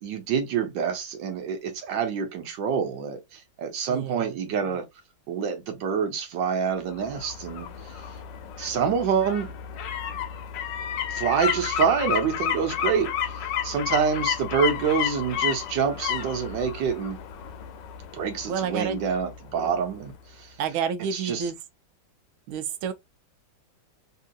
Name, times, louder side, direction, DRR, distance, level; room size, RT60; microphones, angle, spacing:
voice 1, 0.0-4.9 5.3-7.7 8.6-9.5 11.1-17.2 18.1-20.1 20.4-20.5 21.1-21.5, right 6 dB, 70° right, 1.5 m, -27 dB
voice 2, 3.9-4.4 18.5-19.0 20.6-21.5 22.5-22.9, right 7 dB, 85° right, 1.4 m, -29 dB
sound 1, 6.9-19.7 20.1-20.2, left 9 dB, 75° left, 1.2 m, -31 dB
3.5 x 2.8 x 2.3 m
omnidirectional pair, 2.2 m